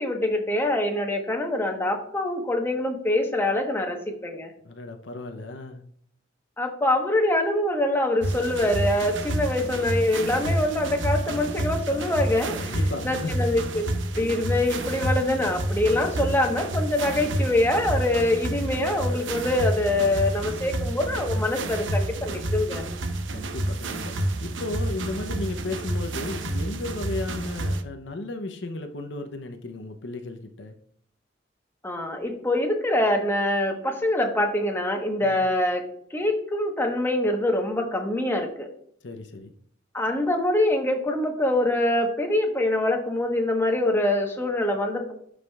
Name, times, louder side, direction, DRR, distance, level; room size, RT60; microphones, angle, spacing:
voice 1, 0.0-4.5 6.6-12.8 13.0-13.9 14.1-22.8 31.8-38.7 39.9-45.1, left 1 dB, 15° left, 2 dB, 1.2 m, -24 dB
voice 2, 4.6-5.8 12.6-13.5 23.3-24.1 24.4-30.8 35.2-35.4 39.0-39.5, left 2 dB, 70° left, 6 dB, 0.7 m, -34 dB
sound 1, 8.2-27.8, right 1 dB, 85° right, 0.8 m, -29 dB
11.5 x 4.9 x 2.4 m, 0.64 s
head